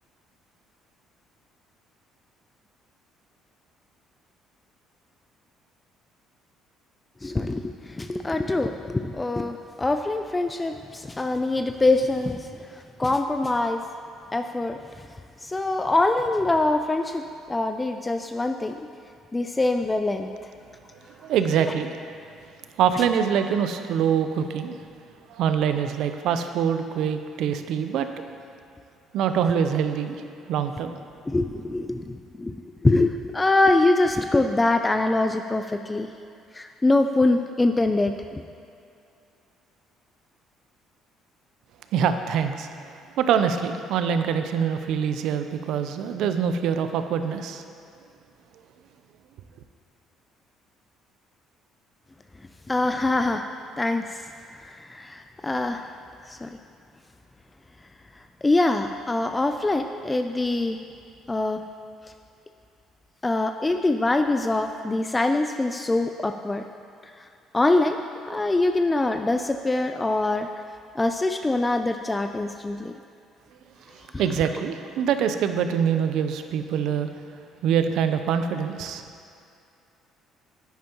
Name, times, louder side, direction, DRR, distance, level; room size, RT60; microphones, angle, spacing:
voice 1, 7.2-13.8 14.3-15.1 15.4-17.2 17.5-18.8 19.3-20.3 31.3-32.6 32.8-36.1 36.5-38.1 52.7-53.5 53.8-54.3 54.5-55.9 56.3-56.5 58.4-60.8 61.3-61.6 63.2-66.6 67.5-68.0 68.3-70.5 71.0-72.9 74.1-74.2, left 2 dB, 15° left, 6 dB, 0.3 m, -24 dB
voice 2, 21.2-22.0 22.8-24.8 25.3-28.1 29.1-31.0 41.9-42.7 43.2-47.6 74.2-77.1 77.6-79.0, right 7 dB, 75° right, 8 dB, 0.5 m, -24 dB
10.5 x 9.1 x 3.0 m, 2.5 s
cardioid pair, 100°, 0 cm